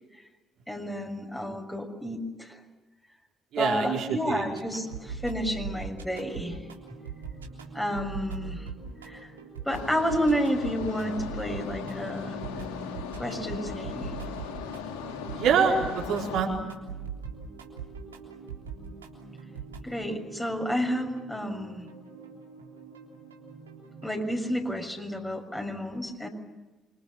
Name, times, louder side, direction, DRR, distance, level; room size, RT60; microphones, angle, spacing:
voice 1, 0.7-2.6 3.6-6.6 7.7-8.7 9.0-9.3 9.6-12.4 13.2-14.1 19.8-21.9 24.0-26.3, equal, 10° left, 3 dB, 6.6 m, -30 dB
voice 2, 3.5-4.4 15.3-16.6, right 6 dB, 60° right, 0 dB, 4.6 m, -25 dB
sound 1, 4.5-24.3, right 5 dB, 85° right, 3.5 m, -42 dB
sound 2, 9.7-16.4, left 7 dB, 75° left, 2.6 m, -38 dB
29.5 x 25.5 x 7.2 m, 1.2 s
figure-of-eight pair, 45°, 0 cm